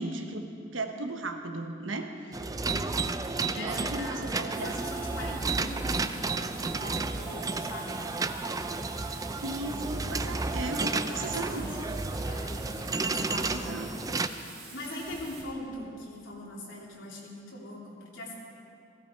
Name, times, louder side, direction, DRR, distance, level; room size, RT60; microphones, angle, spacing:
voice 1, 0.0-2.3 3.5-4.7 9.4-11.8 13.4-14.1, right 2 dB, 85° right, 5 dB, 1.2 m, -36 dB
sound 1, 2.3-14.3, right 3 dB, 20° right, 0.4 m, -32 dB
voice 2, 3.5-8.0 10.9-11.7 12.3-13.7 14.7-18.3, left 1 dB, 80° left, -4 dB, 3.3 m, -41 dB
Bathtub (filling or washing), 4.5-15.4, right 4 dB, 55° right, 3.4 m, -47 dB
17.0 x 15.5 x 4.7 m, 2.7 s
head